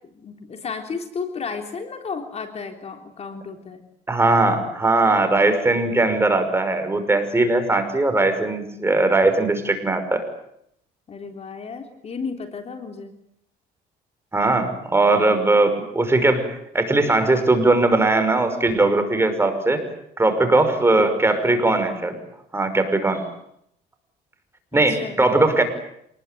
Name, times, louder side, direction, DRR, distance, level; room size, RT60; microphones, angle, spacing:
voice 1, 0.1-3.9 11.1-13.2 15.4-15.7 24.7-25.2, left 5 dB, 40° left, 5 dB, 3.6 m, -33 dB
voice 2, 4.1-10.2 14.3-19.8 20.2-22.2 22.5-23.2 24.7-25.6, right 2 dB, 15° right, 7 dB, 5.8 m, -19 dB
27.5 x 20.5 x 9.4 m, 0.74 s
cardioid pair, 110°, 17 cm